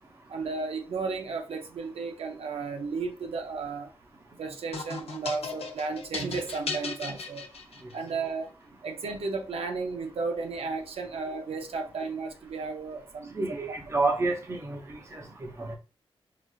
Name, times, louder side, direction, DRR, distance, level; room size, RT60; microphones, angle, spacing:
voice 1, 0.3-3.9 4.4-7.4 7.9-8.5 8.8-13.8, right 4 dB, 80° right, 0.5 m, -34 dB
sound 1, 4.7-8.1, left 4 dB, 90° left, 0.6 m, -37 dB
voice 2, 13.3-15.8, right 3 dB, 30° right, 0.7 m, -30 dB
4.7 x 2.4 x 2.3 m
wide cardioid pair, 160°, 10 cm